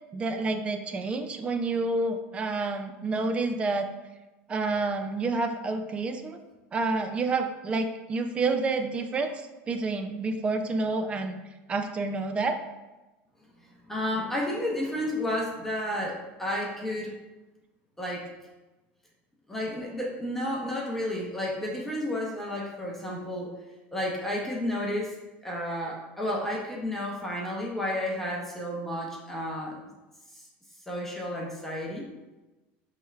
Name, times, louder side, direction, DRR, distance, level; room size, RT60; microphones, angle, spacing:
voice 1, 0.1-3.9 4.5-6.4 6.7-11.4 11.7-12.6, right 3 dB, 20° right, 7 dB, 0.3 m, -29 dB
voice 2, 13.6-17.1 18.0-18.2 19.5-23.5 23.9-25.2 25.4-29.8 30.3-30.5 30.9-32.1, left 1 dB, 5° left, -3 dB, 0.7 m, -31 dB
5.4 x 3.2 x 2.3 m, 1.1 s
supercardioid pair, 140°, 5 cm